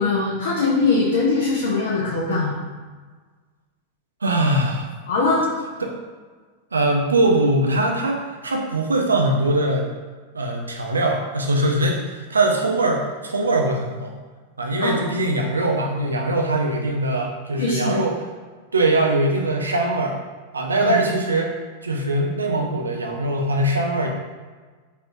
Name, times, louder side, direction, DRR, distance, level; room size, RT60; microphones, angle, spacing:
voice 1, 0.0-2.6 5.1-5.5 14.8-15.0 17.6-18.0 20.8-21.0, left 3 dB, 70° left, -5 dB, 0.7 m, -21 dB
voice 2, 4.2-4.9 5.8-5.9 6.7-9.9 10.3-14.1 14.6-18.1 18.7-20.2 20.5-21.5 21.8-24.1, right 1 dB, 80° right, 1 dB, 0.6 m, -21 dB
4.5 x 3.2 x 2.6 m, 1.4 s
figure-of-eight pair, 90°, 0 cm